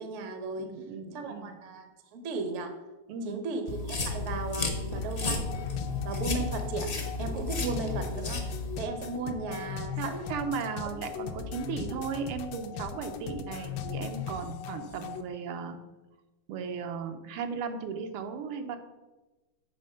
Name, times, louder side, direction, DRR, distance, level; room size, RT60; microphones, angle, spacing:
voice 1, 0.0-0.7 1.1-1.9 2.1-2.7 3.2-5.4 6.0-6.9 7.2-8.5 8.8-10.2, right 3 dB, 65° right, 7 dB, 0.7 m, -35 dB
voice 2, 0.6-1.6 3.1-3.4 10.0-15.8 16.5-18.8, right 6 dB, 90° right, 7 dB, 1.6 m, -36 dB
sound 1, 3.7-8.8, left 3 dB, 55° left, 0.6 m, -33 dB
sound 2, 4.9-15.2, left 8 dB, 75° left, 1.0 m, -38 dB
7.6 x 3.7 x 5.5 m, 1.1 s
omnidirectional pair, 2.4 m